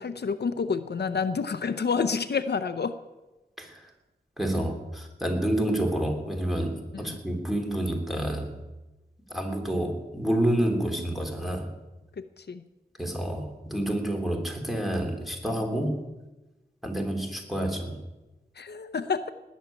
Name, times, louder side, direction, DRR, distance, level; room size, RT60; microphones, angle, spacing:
voice 1, 0.0-2.9 6.9-7.2 12.2-12.6 18.6-19.3, left 5 dB, 75° left, 10 dB, 0.7 m, -29 dB
voice 2, 3.6-3.9 4.4-8.5 9.3-11.7 13.0-16.0 16.8-18.0, right 1 dB, ahead, 2 dB, 3.1 m, -28 dB
19.0 x 7.3 x 9.2 m, 1.1 s
wide cardioid pair, 95°, 17 cm